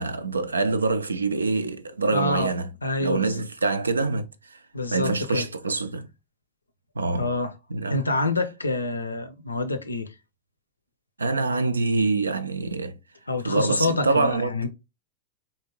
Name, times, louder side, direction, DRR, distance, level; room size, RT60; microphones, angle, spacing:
voice 1, 0.0-2.7 3.0-4.6 4.9-6.1 7.0-7.3 7.7-8.0 11.2-13.0 13.4-14.6, right 3 dB, 75° right, 0.4 m, -25 dB
voice 2, 2.1-2.5 2.8-3.4 4.7-5.5 7.1-7.5 7.9-10.1 13.3-14.7, left 2 dB, 80° left, 0.5 m, -27 dB
3.4 x 2.7 x 2.9 m
figure-of-eight pair, 90°, 0 cm